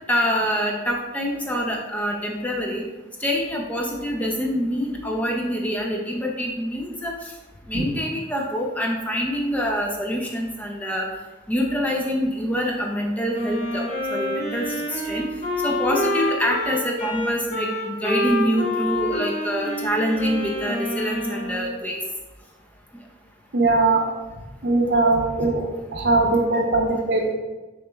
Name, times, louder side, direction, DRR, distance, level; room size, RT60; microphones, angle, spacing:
voice 1, 0.1-2.9 3.2-7.3 7.7-11.1 11.5-15.3 15.6-22.0 26.5-26.6, equal, 10° left, 0 dB, 0.3 m, -25 dB
Wind instrument woodwind instrument, 13.3-21.8, left 1 dB, 40° left, 1.0 m, -27 dB
voice 2, 23.5-24.0 24.6-25.6 25.9-27.3, right 3 dB, 60° right, 2 dB, 0.6 m, -20 dB
6.3 x 3.0 x 2.2 m, 1.2 s
head